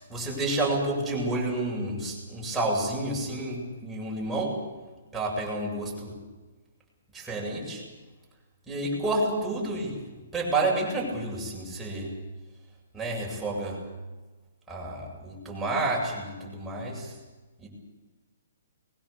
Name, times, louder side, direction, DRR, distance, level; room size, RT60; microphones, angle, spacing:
voice 1, 0.1-4.6 5.1-6.1 7.1-7.8 8.7-10.0 10.3-12.1 12.9-13.8 14.7-17.1 17.6-17.7, right 2 dB, 5° right, -3 dB, 7.5 m, -30 dB
23.0 x 22.0 x 7.0 m, 1.2 s
hypercardioid pair, 155°, 0 cm